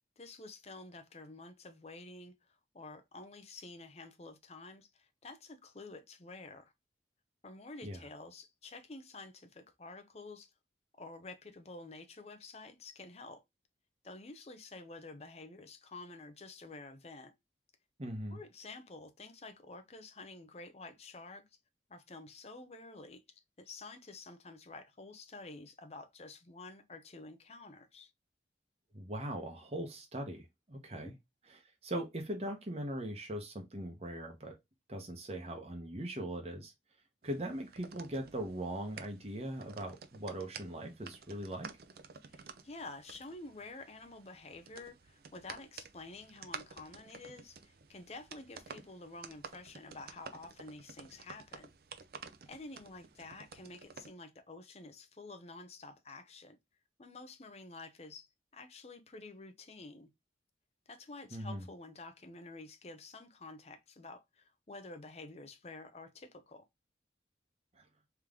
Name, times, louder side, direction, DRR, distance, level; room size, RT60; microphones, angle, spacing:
voice 1, 0.2-6.7 7.4-10.5 11.0-13.4 14.0-17.3 18.3-21.4 21.9-23.2 23.6-28.1 30.9-31.1 42.3-51.7 52.5-56.6 57.0-58.3 58.5-60.1 60.9-66.6, left 3 dB, 35° left, 0.6 m, -50 dB
voice 2, 18.0-18.4 28.9-31.1 31.4-34.6 34.9-36.7 37.2-41.7 61.3-61.6 67.8-67.9, right 1 dB, 35° right, 0.9 m, -40 dB
sound 1, 37.2-54.1, right 5 dB, 55° right, 0.5 m, -52 dB
3.5 x 3.0 x 3.6 m
head